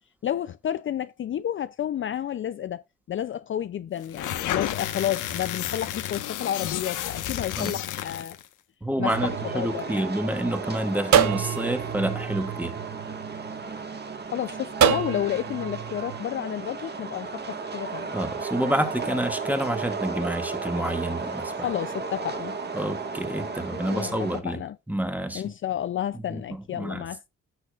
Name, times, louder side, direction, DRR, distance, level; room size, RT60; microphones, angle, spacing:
voice 1, 0.2-2.8 3.1-8.4 9.0-10.1 14.3-18.2 21.6-22.6 23.7-24.8 25.3-27.3, left 10 dB, 45° left, 0.5 m, -31 dB
sound 1, 4.0-8.5, left 11 dB, 85° left, 1.2 m, -31 dB
voice 2, 8.8-12.7 18.1-21.5 22.7-24.6 24.9-25.4 26.3-27.0, right 1 dB, 5° right, 1.9 m, -28 dB
sound 2, 9.0-10.5 11.1-13.7 14.8-16.2, right 9 dB, 65° right, 0.9 m, -27 dB
sound 3, 9.1-24.4, right 4 dB, 35° right, 1.6 m, -34 dB
15.5 x 6.3 x 2.4 m
cardioid pair, 90°, 30 cm